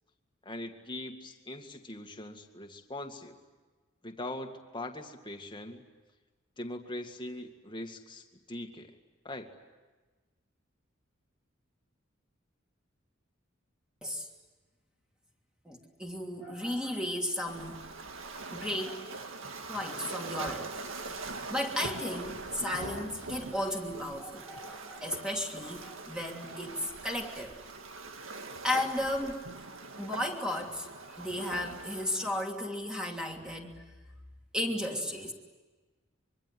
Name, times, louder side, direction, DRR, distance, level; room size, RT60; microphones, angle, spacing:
voice 1, 0.5-3.4 4.0-5.8 6.6-8.9 9.2-9.5, left 1 dB, 25° left, 4 dB, 2.1 m, -41 dB
voice 2, 15.6-17.8 18.5-19.1 19.7-20.7 21.5-26.7 27.0-27.5 28.6-29.7 30.0-33.8 34.5-35.3, left 1 dB, 5° right, 1 dB, 3.0 m, -34 dB
Waves surf, 17.5-32.4, right 3 dB, 80° right, 2.0 m, -42 dB
24.5 x 24.0 x 9.8 m, 1.3 s
head